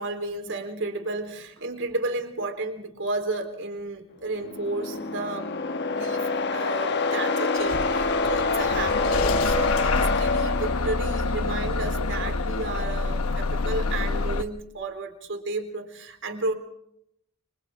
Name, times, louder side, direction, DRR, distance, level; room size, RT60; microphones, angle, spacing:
voice 1, 0.0-5.5 5.8-16.5, right 2 dB, 60° right, 5 dB, 4.0 m, -32 dB
sound 1, 4.4-11.4, left 3 dB, 50° left, 1.3 m, -26 dB
Bus / Engine starting, 7.7-14.4, left 3 dB, 70° left, 1.1 m, -27 dB
30.0 x 26.0 x 3.7 m, 0.74 s
head